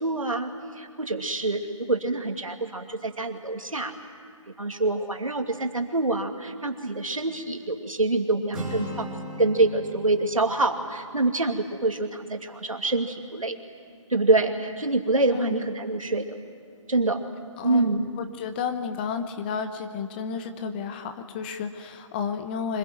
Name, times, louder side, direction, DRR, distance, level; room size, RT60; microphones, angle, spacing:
voice 1, 0.0-3.9 4.6-9.1 9.4-13.6 14.1-16.3 16.9-17.2 17.6-18.1, right 2 dB, 85° right, 5 dB, 2.7 m, -26 dB
Acoustic guitar, 8.5-12.5, equal, 5° right, 3.7 m, -39 dB
voice 2, 15.3-15.7 17.6-22.8, left 6 dB, 15° left, 8 dB, 0.9 m, -32 dB
25.5 x 21.5 x 9.3 m, 2.3 s
figure-of-eight pair, 155°, 17 cm